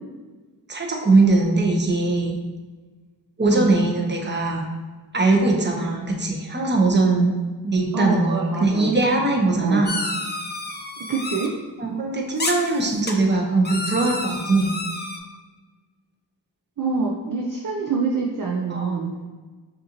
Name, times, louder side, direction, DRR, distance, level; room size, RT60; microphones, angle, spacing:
voice 1, 0.7-2.3 3.4-4.7 5.1-7.3 7.6-10.0 11.8-14.7 18.7-19.0, right 3 dB, 25° right, 0 dB, 0.8 m, -21 dB
voice 2, 7.9-8.9 9.6-9.8 11.0-11.5 16.8-19.3, right 4 dB, 45° right, -1 dB, 0.6 m, -26 dB
sound 1, 9.9-11.5 12.4-13.1 13.6-15.2, left 2 dB, 25° left, 0.5 m, -30 dB
5.7 x 2.6 x 2.9 m, 1.3 s
cardioid pair, 60°, 44 cm